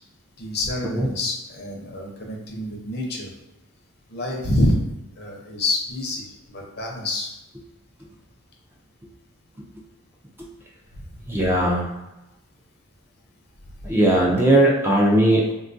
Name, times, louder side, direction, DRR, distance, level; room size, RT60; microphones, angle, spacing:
voice 1, 0.4-3.3 4.1-4.8 5.2-7.3, left 1 dB, 50° left, 0 dB, 0.6 m, -27 dB
voice 2, 11.3-11.9 13.8-15.5, right 1 dB, 10° right, -3 dB, 0.3 m, -18 dB
3.6 x 2.3 x 2.5 m, 0.97 s
head